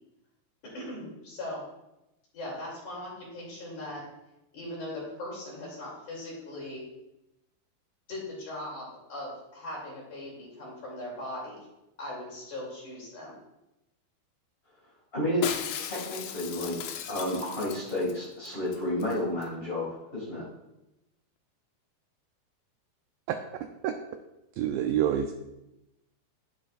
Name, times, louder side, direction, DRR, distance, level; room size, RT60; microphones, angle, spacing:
voice 1, 0.6-1.6 2.3-4.0 4.5-6.8 8.1-11.7 12.0-13.4, left 1 dB, 50° left, -4 dB, 3.8 m, -39 dB
voice 2, 15.1-20.4, left 1 dB, 30° left, -6 dB, 1.0 m, -31 dB
Shatter, 15.4-18.2 18.5-18.6 18.7-19.1 19.4-19.5, left 8 dB, 80° left, 2.8 m, -36 dB
voice 3, 24.6-25.3, right 10 dB, 90° right, 6 dB, 2.0 m, -26 dB
11.0 x 9.2 x 2.4 m, 0.91 s
omnidirectional pair, 4.7 m